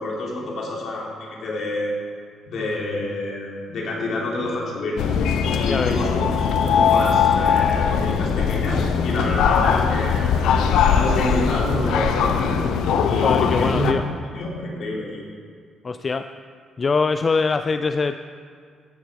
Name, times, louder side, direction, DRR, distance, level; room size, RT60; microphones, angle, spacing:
voice 1, 0.0-1.9 2.5-5.0 5.5-10.6 10.8-12.6 13.0-13.9 14.3-15.2, left 1 dB, 65° left, -3 dB, 3.4 m, -28 dB
sound 1, 5.0-13.9, left 6 dB, 85° left, 0.8 m, -20 dB
voice 2, 5.7-6.1 13.2-14.0 15.8-16.3 16.8-18.1, left 4 dB, 35° left, 10 dB, 0.4 m, -23 dB
14.5 x 10.5 x 4.7 m, 2.1 s
cardioid pair, 90°, 0 cm